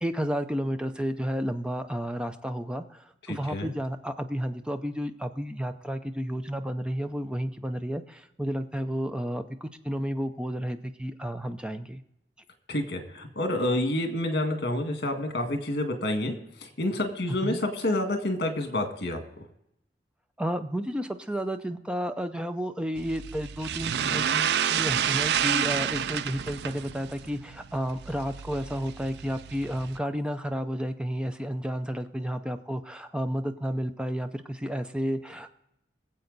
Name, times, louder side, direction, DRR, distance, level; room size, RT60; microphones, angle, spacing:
voice 1, 0.0-12.0 17.4-17.6 20.4-35.5, equal, 5° right, 8 dB, 0.6 m, -32 dB
voice 2, 3.3-3.7 12.7-16.4 16.6-19.2, left 1 dB, 65° left, 5 dB, 1.9 m, -28 dB
sound 1, 23.0-30.0, right 8 dB, 70° right, 0.4 m, -29 dB
21.0 x 7.7 x 4.0 m, 0.81 s
head